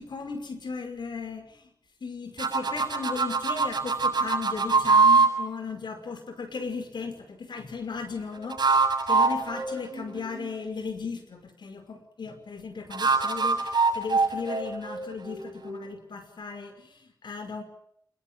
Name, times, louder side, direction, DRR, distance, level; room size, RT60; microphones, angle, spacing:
voice 1, 0.0-1.7 2.0-17.6, left 4 dB, 90° left, 9 dB, 5.5 m, -36 dB
sound 1, 2.4-5.3 8.4-10.5 12.9-15.8, right 4 dB, 70° right, 7.5 m, -24 dB
28.0 x 21.5 x 9.1 m, 0.67 s
wide cardioid pair, 75°, 8 cm